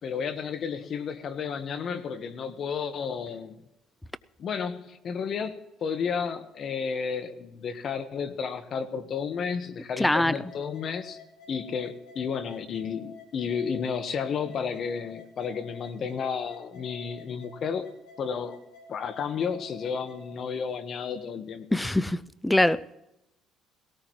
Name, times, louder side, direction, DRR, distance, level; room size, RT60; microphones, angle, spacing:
voice 1, 0.0-3.5 4.4-11.2 11.5-17.9 18.2-18.6 18.9-21.7, left 6 dB, 50° left, 1.3 m, -32 dB
voice 2, 10.0-10.3 21.7-22.9, left 1 dB, 10° left, 0.5 m, -23 dB
sound 1, 10.3-20.3, left 4 dB, 80° left, 3.8 m, -50 dB
18.0 x 17.5 x 3.1 m
cardioid pair, 95°, 0 cm